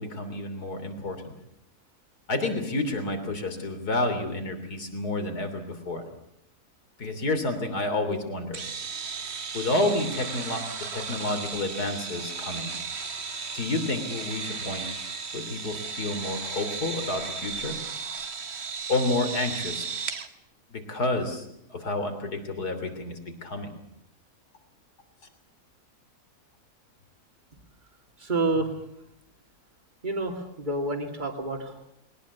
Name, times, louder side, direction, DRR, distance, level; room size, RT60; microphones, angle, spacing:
voice 1, 0.0-1.3 2.3-6.0 7.0-8.6 9.5-10.6 10.9-12.7 13.5-14.9 15.3-17.8 18.9-19.9 20.7-23.8, left 2 dB, 80° left, 7 dB, 3.7 m, -30 dB
sound 1, 8.5-20.3, right 5 dB, 45° right, 1.5 m, -35 dB
voice 2, 28.2-28.7 30.0-31.9, right 2 dB, 30° right, 4 dB, 2.7 m, -28 dB
21.5 x 19.0 x 8.3 m, 0.76 s
omnidirectional pair, 1.6 m